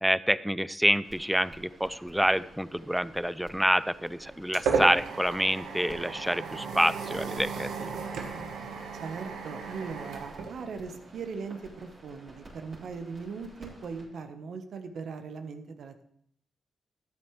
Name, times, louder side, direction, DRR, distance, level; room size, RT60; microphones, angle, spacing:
voice 1, 0.0-8.0, equal, 5° right, 17 dB, 0.4 m, -27 dB
sound 1, 1.0-14.0, right 1 dB, 40° right, 4.4 m, -52 dB
sound 2, 3.8-11.2, right 5 dB, 90° right, 1.3 m, -35 dB
voice 2, 9.0-16.0, right 5 dB, 70° right, 8 dB, 1.1 m, -39 dB
13.0 x 9.5 x 3.2 m, 0.67 s
cardioid pair, 85°, 0 cm